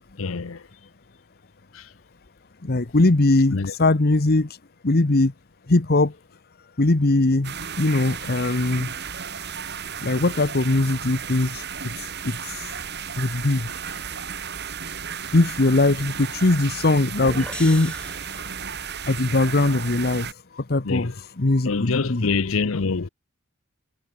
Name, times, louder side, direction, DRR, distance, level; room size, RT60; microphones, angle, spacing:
voice 1, 0.2-0.6 1.7-1.8 3.5-3.7 20.8-21.1 21.6-23.1, left 4 dB, 70° left, 0.7 m, -25 dB
voice 2, 2.6-4.5 4.8-5.3 5.7-6.1 6.8-8.9 10.0-11.6 12.0-12.7 13.2-13.7 15.3-17.9 19.1-20.3 20.6-22.3, left 2 dB, 45° left, 1.0 m, -21 dB
sound 1, 7.4-20.3, right 7 dB, 50° right, 6.0 m, -34 dB
sound 2, 17.2-18.9, left 1 dB, 5° left, 5.7 m, -38 dB
head